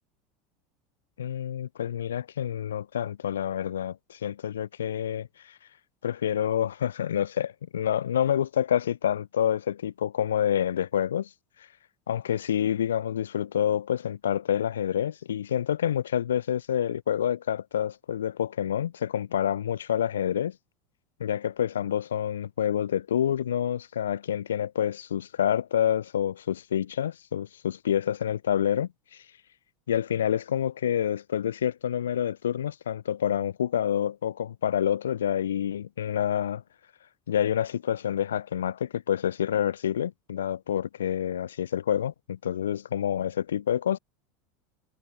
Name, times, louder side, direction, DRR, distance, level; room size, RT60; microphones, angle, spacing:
voice 1, 1.2-5.6 6.0-11.3 12.1-20.6 21.2-29.2 29.9-36.6 37.3-44.0, left 9 dB, 75° left, 0.3 m, -28 dB
figure-of-eight pair, 80°, 0 cm